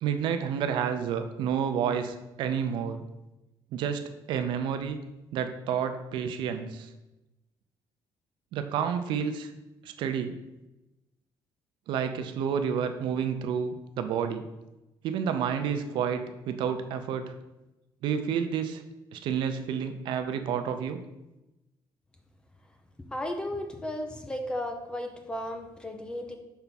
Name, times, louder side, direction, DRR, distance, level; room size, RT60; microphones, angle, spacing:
voice 1, 0.0-3.0 3.7-5.0 5.3-6.9 8.5-9.5 9.8-10.3 11.9-14.5 15.0-17.3 18.0-18.8 19.1-21.0, right 7 dB, 75° right, 8 dB, 0.6 m, -30 dB
voice 2, 23.1-26.4, left 1 dB, 10° left, 5 dB, 0.6 m, -34 dB
5.6 x 3.5 x 5.8 m, 0.99 s
cardioid pair, 170°, 8 cm